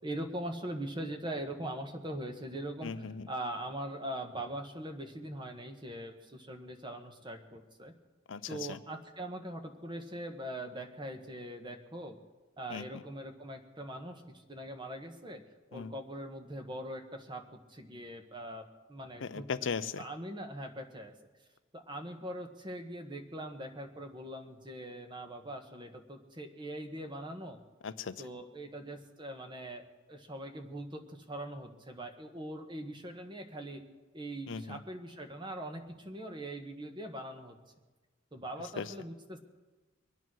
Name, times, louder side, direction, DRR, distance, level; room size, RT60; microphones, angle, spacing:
voice 1, 0.0-2.9 3.3-7.9 8.5-12.2 12.6-15.4 15.7-17.4 17.7-19.5 20.0-21.1 21.7-27.6 28.2-33.8 34.1-37.6 38.3-39.4, right 1 dB, 25° right, 6 dB, 1.4 m, -42 dB
voice 2, 2.8-3.3 8.3-8.8 12.7-12.8 15.7-15.9 19.2-20.0 27.8-28.2 34.5-34.8 38.8-38.9, left 5 dB, 85° left, 13 dB, 0.6 m, -38 dB
23.5 x 9.3 x 6.2 m, 1.2 s
head